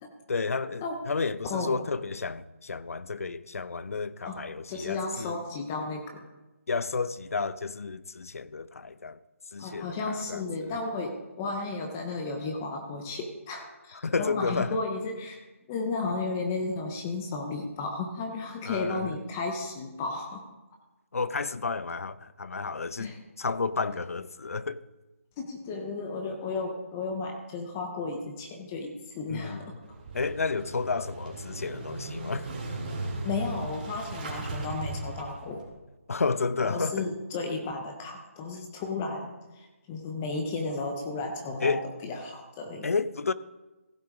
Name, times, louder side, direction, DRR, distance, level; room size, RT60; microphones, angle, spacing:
voice 1, 0.3-5.4 6.7-9.2 9.5-10.4 14.0-14.8 18.7-19.2 21.1-24.8 29.3-29.8 30.1-32.5 36.1-37.1 41.6-41.8 42.8-43.3, left 4 dB, 75° left, 0.6 m, -31 dB
voice 2, 4.2-6.2 9.6-15.4 15.7-20.4 23.0-23.2 25.4-29.6 33.2-35.6 36.6-42.9, left 3 dB, 10° left, 0.4 m, -34 dB
Motorcycle / Engine starting, 29.8-35.7, right 2 dB, 35° right, 2.3 m, -37 dB
15.5 x 8.0 x 3.5 m
hypercardioid pair, 175°, 8 cm